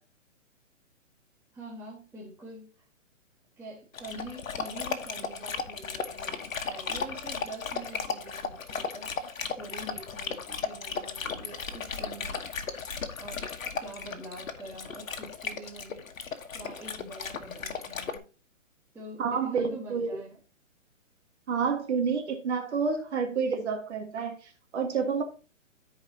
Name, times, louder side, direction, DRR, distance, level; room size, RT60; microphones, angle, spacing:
voice 1, 1.5-2.8 3.6-6.4 6.7-12.7 13.2-16.1 16.5-18.3 18.9-20.4, right 1 dB, 5° right, 1.3 m, -45 dB
Dog, 3.9-18.2, left 5 dB, 80° left, 1.3 m, -36 dB
voice 2, 19.2-20.2 21.5-25.2, right 5 dB, 60° right, 1.7 m, -29 dB
14.0 x 4.8 x 2.8 m
hypercardioid pair, 145°, 39 cm